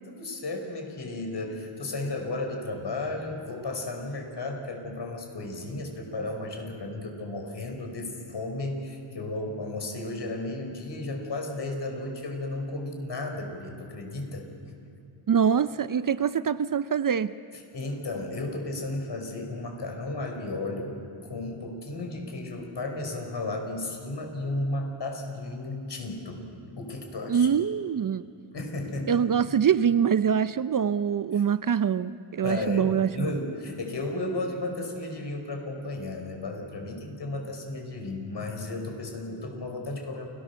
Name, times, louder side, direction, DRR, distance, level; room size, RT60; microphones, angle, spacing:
voice 1, 0.1-14.5 17.7-26.4 26.8-27.5 28.5-29.2 31.3-31.4 32.4-40.2, left 2 dB, 55° left, 3 dB, 5.3 m, -34 dB
voice 2, 15.3-17.3 27.3-28.3 29.1-33.3, right 7 dB, 40° right, 14 dB, 0.6 m, -24 dB
29.0 x 18.5 x 7.1 m, 2.6 s
cardioid pair, 75°, 49 cm